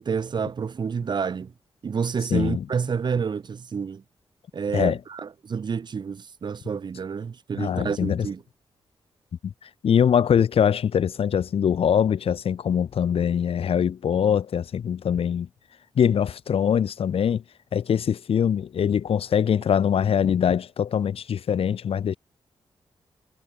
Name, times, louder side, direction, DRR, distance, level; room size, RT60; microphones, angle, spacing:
voice 1, 0.0-1.5 1.8-4.0 4.5-8.4, right 6 dB, 50° right, 2.6 m, -29 dB
voice 2, 2.3-2.6 4.7-5.0 7.6-8.3 9.4-9.5 9.8-15.5 15.9-17.4 17.7-22.2, left 8 dB, 75° left, 3.2 m, -23 dB
wide cardioid pair, 155°, 10 cm